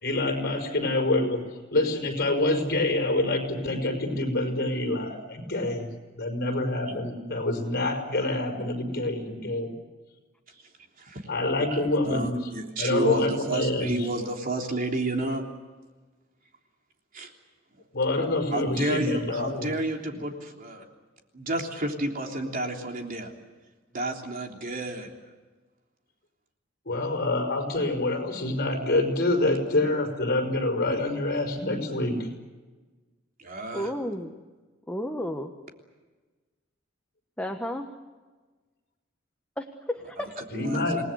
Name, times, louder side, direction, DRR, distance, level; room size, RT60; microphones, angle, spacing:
voice 1, 0.0-1.4 1.7-5.8 6.2-9.7 11.3-12.5 12.8-14.1 17.9-19.7 26.9-32.3 40.5-41.0, left 2 dB, 50° left, 3 dB, 5.6 m, -26 dB
voice 2, 12.0-15.4 17.1-17.3 18.5-20.8 21.3-23.3 23.9-25.1 33.4-33.9 40.2-40.3 40.5-41.0, right 1 dB, 45° right, 2 dB, 3.4 m, -31 dB
voice 3, 33.7-34.3 34.9-35.5 37.4-37.9 39.6-40.4, equal, 5° left, 3 dB, 1.4 m, -32 dB
28.0 x 19.5 x 8.1 m, 1.3 s
head